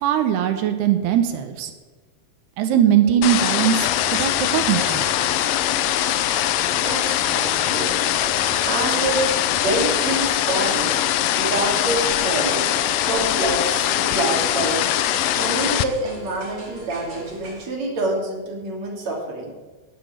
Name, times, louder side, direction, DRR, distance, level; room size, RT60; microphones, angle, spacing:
voice 1, 0.0-1.7 2.6-5.0, right 10 dB, 85° right, 7 dB, 3.1 m, -20 dB
sound 1, 3.2-15.8, left 12 dB, 80° left, 2.2 m, -22 dB
sound 2, 3.8-17.7, right 2 dB, 30° right, 1.7 m, -40 dB
voice 2, 6.8-7.9 8.6-11.0 11.3-12.6 13.0-14.8 15.2-19.5, right 2 dB, 45° right, -2 dB, 3.9 m, -26 dB
11.5 x 8.4 x 9.2 m, 1.3 s
omnidirectional pair, 4.6 m